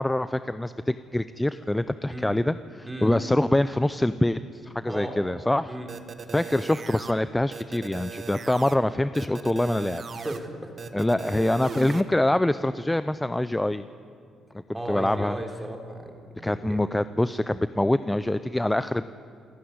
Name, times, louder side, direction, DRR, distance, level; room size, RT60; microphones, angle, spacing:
voice 1, 0.0-5.8 6.3-10.0 10.9-13.8 14.9-15.4 16.4-19.1, left 1 dB, 10° left, 13 dB, 0.5 m, -25 dB
voice 2, 4.9-5.2 5.6-5.9 10.1-10.7 14.7-16.8, right 1 dB, 10° right, 2 dB, 3.4 m, -36 dB
sound 1, 5.9-7.1 7.5-8.8 9.1-10.4 10.8-12.0, right 5 dB, 45° right, 1.3 m, -38 dB
27.5 x 10.0 x 9.6 m, 2.3 s
cardioid pair, 90°, 0 cm